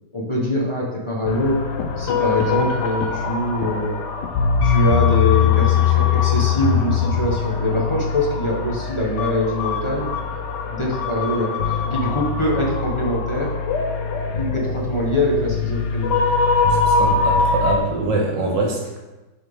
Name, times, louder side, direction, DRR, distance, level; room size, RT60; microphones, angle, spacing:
voice 1, 0.1-1.7 2.0-3.9 4.6-10.2 10.7-13.5 14.4-16.1, left 1 dB, 20° left, -3 dB, 0.8 m, -23 dB
sound 1, 1.3-17.8, left 5 dB, 70° left, 1.2 m, -22 dB
voice 2, 16.7-19.0, right 2 dB, 75° right, -1 dB, 2.0 m, -24 dB
9.9 x 4.3 x 3.6 m, 1.1 s
omnidirectional pair, 2.0 m